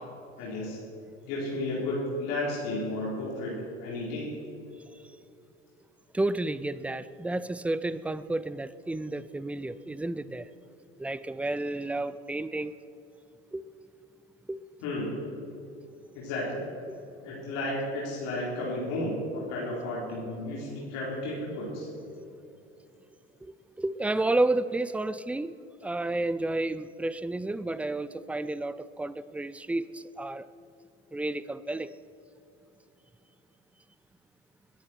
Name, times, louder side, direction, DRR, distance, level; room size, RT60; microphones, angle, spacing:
voice 1, 0.4-0.8 1.3-3.5 3.8-4.3 14.8-15.2 16.1-16.6 17.2-21.9, left 1 dB, 60° left, -5 dB, 4.0 m, -33 dB
voice 2, 6.1-10.5 11.0-12.7 13.5-13.6 14.5-14.6 16.9-17.0 23.4-25.6 25.8-30.5 31.1-31.9, right 2 dB, 5° right, 16 dB, 0.4 m, -31 dB
21.5 x 10.5 x 4.4 m, 2.8 s
hypercardioid pair, 80°, 33 cm